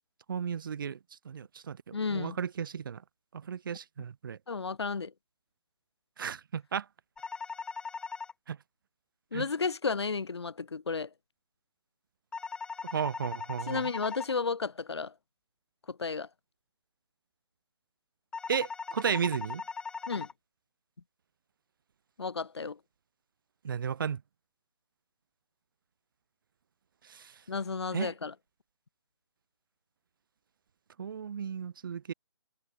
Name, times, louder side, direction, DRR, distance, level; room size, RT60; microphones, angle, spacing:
voice 1, 0.3-1.0 1.3-3.0 3.3-4.4 6.2-6.9 8.5-8.6 9.3-9.5 12.9-13.9 18.5-19.6 23.6-24.2 27.1-27.3 27.9-28.1 31.0-32.1, right 7 dB, 45° right, 2.0 m, -34 dB
voice 2, 1.9-2.4 4.5-5.1 9.3-11.1 13.6-15.1 15.9-16.3 20.1-20.3 22.2-22.8 27.5-28.3, left 4 dB, 60° left, 2.5 m, -33 dB
sound 1, 7.2-8.3 12.3-14.3 18.3-20.3, left 5 dB, 5° left, 3.7 m, -39 dB
figure-of-eight pair, 140°, 15 cm